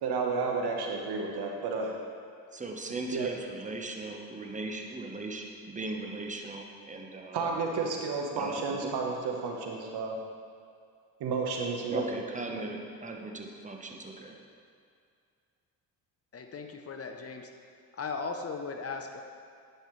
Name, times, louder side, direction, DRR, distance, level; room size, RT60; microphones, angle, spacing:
voice 1, 0.0-1.9 3.1-3.3 7.3-10.2 11.2-12.0, right 4 dB, 70° right, 1 dB, 1.2 m, -31 dB
voice 2, 2.5-7.6 8.3-8.9 11.9-14.4, right 2 dB, 20° right, 2 dB, 1.0 m, -38 dB
voice 3, 16.3-17.5 18.0-19.2, left 4 dB, 35° left, 4 dB, 0.7 m, -37 dB
10.5 x 5.6 x 3.2 m, 2.3 s
supercardioid pair, 70°, 40 cm